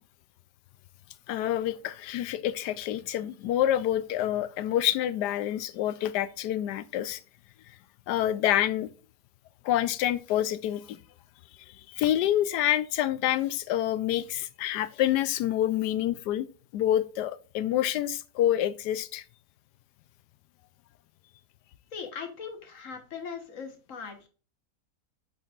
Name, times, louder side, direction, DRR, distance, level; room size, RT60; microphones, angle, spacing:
voice 1, 1.3-7.2 8.1-8.9 9.6-11.0 11.9-16.5 16.7-19.2, left 12 dB, 85° left, 1.2 m, -27 dB
voice 2, 21.9-24.3, left 6 dB, 55° left, 1.6 m, -39 dB
7.5 x 5.1 x 2.4 m
omnidirectional pair, 1.7 m